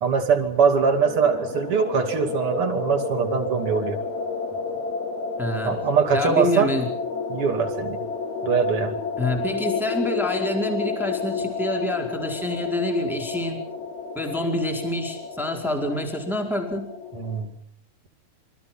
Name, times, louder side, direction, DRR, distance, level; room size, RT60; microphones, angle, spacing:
voice 1, 0.0-4.0 5.6-6.7 7.3-8.0 8.4-8.9 17.1-17.5, right 6 dB, 35° right, 4 dB, 2.9 m, -22 dB
sound 1, 0.5-17.4, left 5 dB, 65° left, 4.0 m, -31 dB
voice 2, 5.4-5.7 6.1-6.9 9.2-13.6 14.1-16.9, left 1 dB, ahead, 3 dB, 4.1 m, -27 dB
27.0 x 23.5 x 6.0 m, 0.66 s
omnidirectional pair, 5.0 m